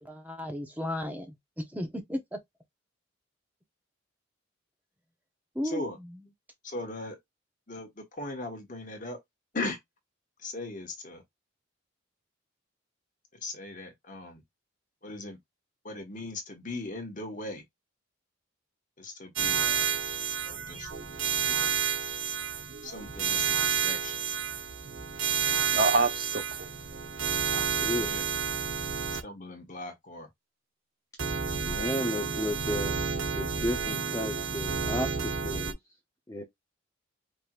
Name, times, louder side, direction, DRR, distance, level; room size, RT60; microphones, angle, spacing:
voice 1, 0.0-2.4 5.5-6.1, left 1 dB, 10° right, 1.0 m, -35 dB
voice 2, 5.6-6.0 6.6-7.2 7.7-9.2 9.5-9.8 10.4-11.2 13.3-14.4 15.0-15.4 15.8-17.6 19.0-19.9 20.5-20.9 21.5-21.7 22.8-24.2 27.5-28.2 29.2-30.3, left 2 dB, 40° left, 1.4 m, -39 dB
sound 1, 19.4-29.2 31.2-35.7, right 6 dB, 85° right, 1.0 m, -30 dB
voice 3, 25.5-27.0, right 3 dB, 50° right, 0.7 m, -28 dB
voice 4, 27.8-28.1 31.6-33.0 33.3-35.8 36.3-36.4, equal, 15° left, 0.7 m, -33 dB
5.3 x 3.1 x 2.5 m
head